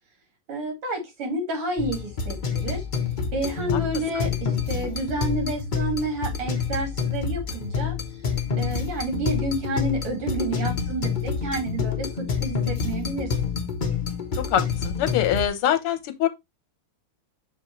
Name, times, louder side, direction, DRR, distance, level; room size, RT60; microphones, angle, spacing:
voice 1, 0.5-2.8 3.3-7.9 8.6-12.1 12.4-13.5, right 2 dB, 80° right, 3.4 m, -30 dB
sound 1, 1.8-15.5, left 6 dB, 50° left, 0.5 m, -28 dB
voice 2, 14.4-16.3, left 10 dB, 80° left, 1.9 m, -24 dB
6.3 x 5.3 x 3.0 m
omnidirectional pair, 2.4 m